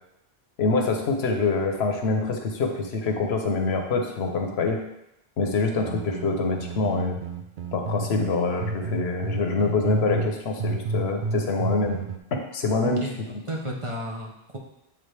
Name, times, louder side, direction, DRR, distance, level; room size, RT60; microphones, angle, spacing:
voice 1, 0.6-4.8 5.4-7.2 7.7-12.0 12.5-13.0, left 3 dB, 85° left, 3 dB, 1.1 m, -25 dB
sound 1, 5.7-8.3 8.6-10.3 10.6-12.2, right 3 dB, 60° right, 0.6 m, -30 dB
voice 2, 12.8-14.6, right 1 dB, 35° right, -1 dB, 0.8 m, -34 dB
8.3 x 3.7 x 3.3 m, 0.84 s
omnidirectional pair, 1.1 m